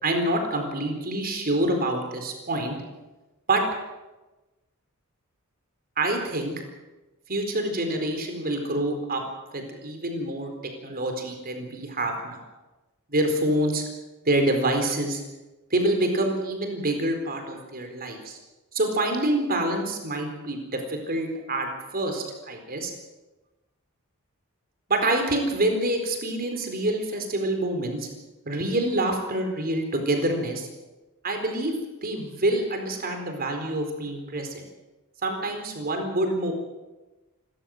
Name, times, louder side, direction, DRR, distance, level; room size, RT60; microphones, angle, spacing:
voice 1, 0.0-2.8 3.5-3.6 6.0-6.5 7.3-9.2 9.5-10.5 10.8-12.4 13.1-13.8 14.2-15.2 15.7-18.4 18.7-22.9 24.9-28.1 28.5-30.7 31.2-31.7 32.0-34.6 35.2-36.5, right 1 dB, 45° right, 4 dB, 4.3 m, -26 dB
29.0 x 14.0 x 7.8 m, 1.1 s
head